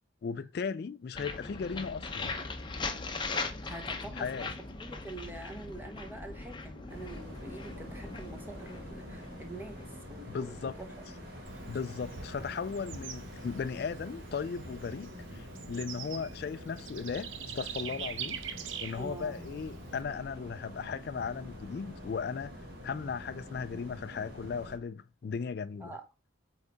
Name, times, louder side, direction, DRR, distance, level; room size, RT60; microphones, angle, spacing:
voice 1, 0.2-2.3 4.2-4.5 10.2-10.7 11.7-18.4 18.8-22.5 22.8-25.9, left 5 dB, 50° left, 0.3 m, -37 dB
sound 1, 1.1-11.0, left 3 dB, 25° left, 0.7 m, -40 dB
voice 2, 3.6-4.5 4.8-11.0 12.4-12.5 18.9-19.8 25.8-26.0, right 2 dB, 10° right, 1.0 m, -46 dB
sound 2, 6.9-24.8, equal, 50° right, 2.3 m, -46 dB
Bird / Insect, 11.5-20.0, right 7 dB, 75° right, 0.8 m, -44 dB
8.1 x 3.8 x 3.5 m
head